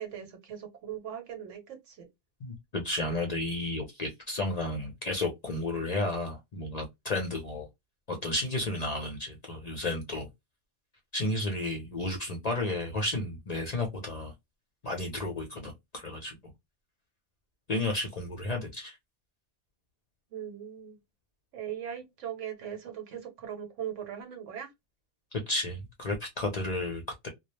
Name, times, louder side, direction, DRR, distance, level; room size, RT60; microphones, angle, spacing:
voice 1, 0.0-2.1 20.3-21.0 21.5-24.7, right 9 dB, 80° right, 1.1 m, -39 dB
voice 2, 2.4-7.7 8.1-10.3 11.1-14.3 14.8-16.5 17.7-19.0 25.3-27.3, left 2 dB, 50° left, 0.5 m, -32 dB
2.2 x 2.0 x 2.9 m
omnidirectional pair, 1.2 m